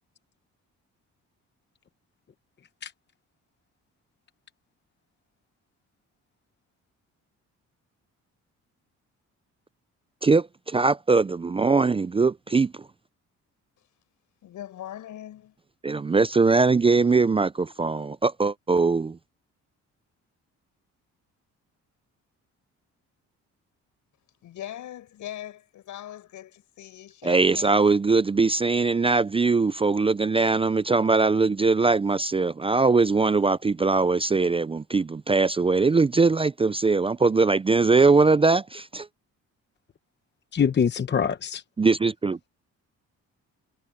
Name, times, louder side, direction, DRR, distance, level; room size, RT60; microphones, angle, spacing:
voice 1, 10.2-12.7 15.8-19.2 27.2-39.1 41.8-42.4, right 4 dB, 20° right, 0.4 m, -21 dB
voice 2, 14.4-15.6 24.4-28.0, left 12 dB, 75° left, 6.8 m, -41 dB
voice 3, 40.5-41.6, left 7 dB, 35° left, 1.0 m, -24 dB
cardioid pair, 90°, 30 cm